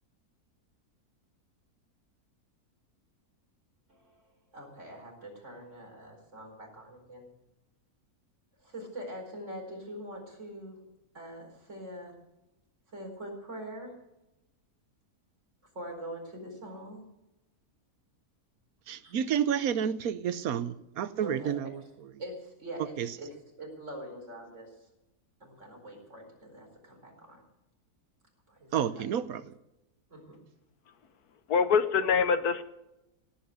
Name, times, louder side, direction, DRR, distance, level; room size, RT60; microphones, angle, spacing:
voice 1, 3.9-4.2 4.5-7.3 8.6-10.8 11.1-12.1 12.9-13.9 15.7-17.0 19.0-19.2 21.2-21.9 22.2-24.9 25.4-27.4 28.5-28.7 30.1-30.4, right 1 dB, 50° right, 0 dB, 4.9 m, -43 dB
voice 2, 18.9-21.8 23.0-23.1 28.7-29.4, right 8 dB, 70° right, 14 dB, 1.2 m, -30 dB
voice 3, 31.5-32.6, left 6 dB, 80° left, 10 dB, 1.6 m, -24 dB
17.0 x 8.5 x 8.1 m, 0.93 s
omnidirectional pair, 1.6 m